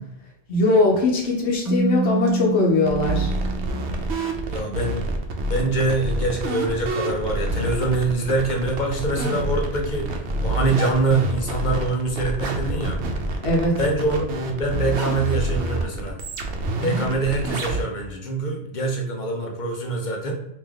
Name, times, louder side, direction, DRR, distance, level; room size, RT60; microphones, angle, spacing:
voice 1, 0.5-3.3 13.4-13.7, left 2 dB, 70° left, -3 dB, 1.1 m, -20 dB
Keyboard (musical), 1.7-4.4, right 3 dB, 20° right, 0.5 m, -27 dB
sound 1, 2.9-17.8, right 2 dB, 75° right, 0.9 m, -27 dB
voice 2, 4.5-5.2 5.5-10.1 10.4-13.0 13.8-16.2 16.8-20.3, right 2 dB, 45° left, 1 dB, 0.8 m, -24 dB
3.4 x 2.9 x 3.5 m, 0.80 s
omnidirectional pair, 1.1 m